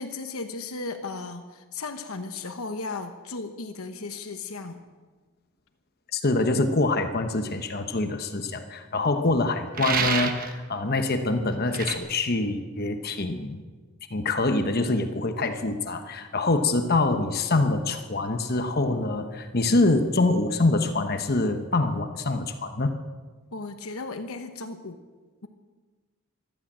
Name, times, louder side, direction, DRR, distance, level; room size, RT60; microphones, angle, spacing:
voice 1, 0.0-4.8 23.5-25.0, left 3 dB, 80° left, 7 dB, 1.0 m, -35 dB
voice 2, 6.1-13.6 14.1-22.9, left 2 dB, 45° left, 7 dB, 1.0 m, -25 dB
sound 1, 9.7-10.6 11.7-12.0, right 6 dB, 40° right, 1.2 m, -27 dB
14.5 x 12.5 x 7.5 m, 1.3 s
head